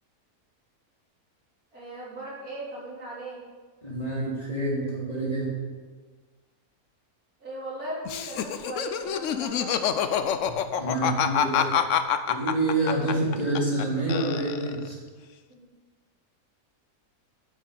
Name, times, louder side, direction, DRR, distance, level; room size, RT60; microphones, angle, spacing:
voice 1, 1.7-3.4 7.4-10.3 15.5-15.7, right 1 dB, 75° right, -7 dB, 4.2 m, -38 dB
voice 2, 3.8-5.5 10.8-11.7 12.3-14.9, right 2 dB, 25° left, -6 dB, 3.3 m, -27 dB
Laughter, 8.1-13.8 14.1-14.9, left 8 dB, 65° left, 0.9 m, -26 dB
9.1 x 7.9 x 6.8 m, 1.4 s
omnidirectional pair, 1.6 m